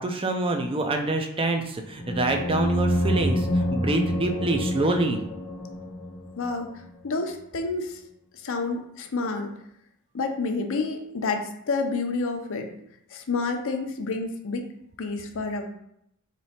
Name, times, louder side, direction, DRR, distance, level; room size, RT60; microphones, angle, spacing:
voice 1, 0.0-5.2, right 2 dB, 25° right, 5 dB, 0.4 m, -26 dB
sound 1, 2.0-6.5, left 1 dB, 20° left, 0.8 m, -27 dB
voice 2, 6.4-6.7 7.0-8.0 8.3-9.5 10.1-12.7 13.1-14.6 15.0-15.7, left 3 dB, 60° left, 6 dB, 0.6 m, -29 dB
3.2 x 3.0 x 4.2 m, 0.76 s
head